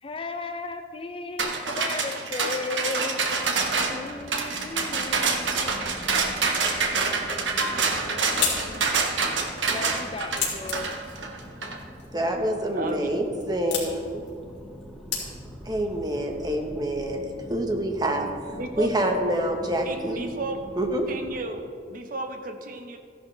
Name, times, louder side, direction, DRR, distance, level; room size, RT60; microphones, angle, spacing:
voice 1, 0.0-3.3 3.7-6.0 6.9-9.0 9.7-10.9, left 3 dB, 30° left, 7 dB, 0.5 m, -36 dB
sound 1, 1.4-11.8, right 4 dB, 85° right, 1.2 m, -26 dB
sound 2, 3.2-21.4, equal, ahead, 1.0 m, -44 dB
sound 3, 7.7-15.7, left 6 dB, 75° left, 2.8 m, -35 dB
voice 2, 12.1-14.0 15.7-18.3 18.8-20.2 20.8-21.1, right 1 dB, 20° right, 3 dB, 1.0 m, -26 dB
voice 3, 12.7-13.1 18.6-18.9 19.8-20.6 21.1-23.0, right 2 dB, 50° right, 6 dB, 0.9 m, -34 dB
14.0 x 11.0 x 3.3 m, 2.3 s
head